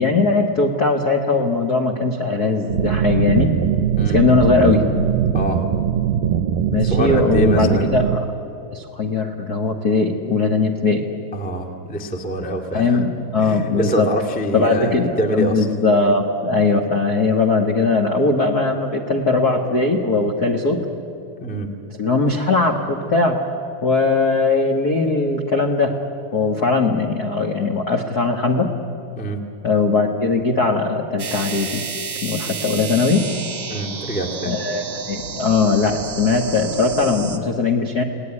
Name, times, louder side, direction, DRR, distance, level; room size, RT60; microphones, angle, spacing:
voice 1, 0.0-3.5 4.0-4.8 6.7-8.2 8.7-11.1 12.7-14.1 14.5-20.8 22.0-23.5 23.8-26.0 26.3-28.7 29.6-31.8 32.2-33.3 34.4-38.0, left 3 dB, 75° left, 2 dB, 0.8 m, -19 dB
sound 1, 2.7-8.2, right 9 dB, 75° right, 2.4 m, -20 dB
voice 2, 6.8-7.9 11.3-13.0 13.4-15.7 21.4-21.7 29.1-29.4 33.7-34.6, right 1 dB, 5° left, 2 dB, 0.7 m, -25 dB
sound 2, 31.2-37.4, right 6 dB, 45° right, 1.5 m, -31 dB
29.5 x 18.5 x 9.8 m, 2.9 s
omnidirectional pair, 4.2 m